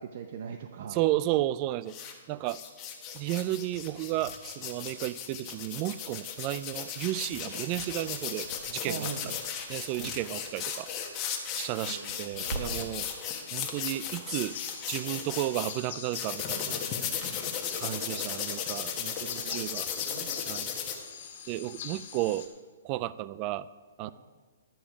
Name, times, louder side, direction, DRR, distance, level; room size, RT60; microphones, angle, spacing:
voice 1, 0.0-1.0 8.8-9.4 10.0-10.1 11.9-13.0 17.8-18.6 19.4-19.6 20.1-20.8, right 7 dB, 55° right, 6 dB, 0.7 m, -42 dB
voice 2, 0.9-1.9 2.3-2.6 3.1-9.1 9.7-10.9 11.6-13.1 13.5-14.6 14.9-16.8 17.7-19.9 20.5-20.7 21.5-22.5 22.8-23.7 24.0-24.1, right 15 dB, 30° right, 18 dB, 0.3 m, -33 dB
sound 1, 1.9-2.1 2.5-15.7 16.1-20.9, left 8 dB, 25° left, 1.3 m, -36 dB
sound 2, 3.7-14.1, right 3 dB, 70° right, 1.3 m, -47 dB
sound 3, 14.5-22.5, left 7 dB, 50° left, 1.8 m, -43 dB
11.5 x 8.7 x 4.8 m, 1.4 s
hypercardioid pair, 150°, 0 cm